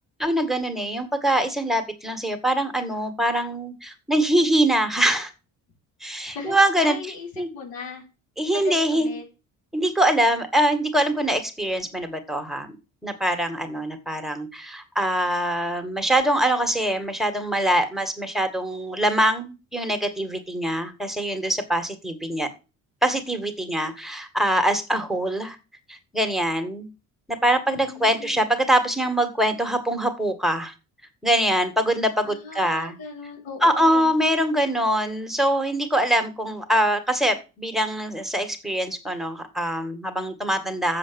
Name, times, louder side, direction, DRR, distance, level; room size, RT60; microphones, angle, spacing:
voice 1, 0.2-5.3 6.0-7.0 7.4-7.5 8.4-9.2 9.7-12.7 13.0-22.5 23.0-25.6 25.9-26.9 27.3-30.7 31.2-33.0 33.6-41.0, right 1 dB, ahead, 7 dB, 2.1 m, -23 dB
voice 2, 6.2-8.0 8.5-9.2 27.7-28.5 32.2-34.1, left 4 dB, 85° left, 2 dB, 4.6 m, -37 dB
7.4 x 7.4 x 7.1 m, 0.30 s
cardioid pair, 90°, 33 cm